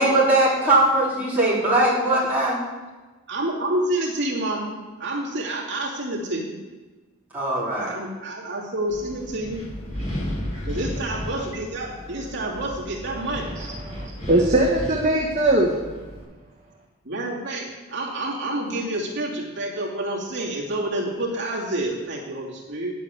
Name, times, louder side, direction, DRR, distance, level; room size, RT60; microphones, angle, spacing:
voice 1, 0.0-2.6 7.3-7.9, right 2 dB, 10° right, 3.7 m, -20 dB
voice 2, 3.3-6.5 7.7-9.6 10.6-13.5 17.0-22.9, right 1 dB, 50° right, 2.6 m, -28 dB
Wind, 8.9-16.2, equal, 30° left, 3.8 m, -34 dB
voice 3, 13.6-15.7, right 1 dB, 35° right, 1.3 m, -21 dB
10.5 x 8.2 x 8.4 m
head